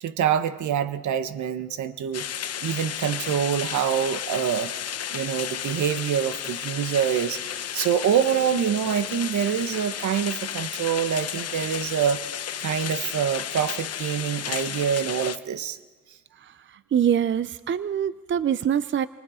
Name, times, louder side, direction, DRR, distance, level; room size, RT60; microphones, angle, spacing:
voice 1, 0.0-2.3 2.6-4.7 5.1-7.4 7.7-12.2 12.6-15.8, right 8 dB, 70° right, 11 dB, 1.3 m, -25 dB
sound 1, 2.1-15.4, left 9 dB, 55° left, 1.0 m, -33 dB
voice 2, 16.9-19.1, right 9 dB, 40° right, 14 dB, 0.6 m, -24 dB
29.5 x 24.0 x 5.1 m, 1.3 s
cardioid pair, 90°, 30 cm